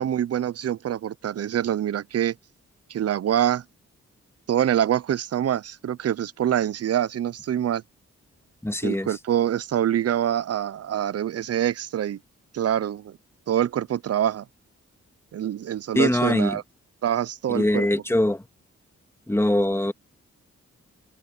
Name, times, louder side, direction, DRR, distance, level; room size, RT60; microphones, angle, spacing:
voice 1, 0.0-2.3 2.9-3.6 4.5-7.8 8.8-12.2 12.5-13.2 13.5-14.4 15.3-16.6 17.0-17.9, right 10 dB, 55° right, 0.6 m, -25 dB
voice 2, 8.6-9.1 16.0-16.6 17.5-18.4 19.3-19.9, left 1 dB, 10° left, 1.8 m, -22 dB
open air
cardioid pair, 60°, 29 cm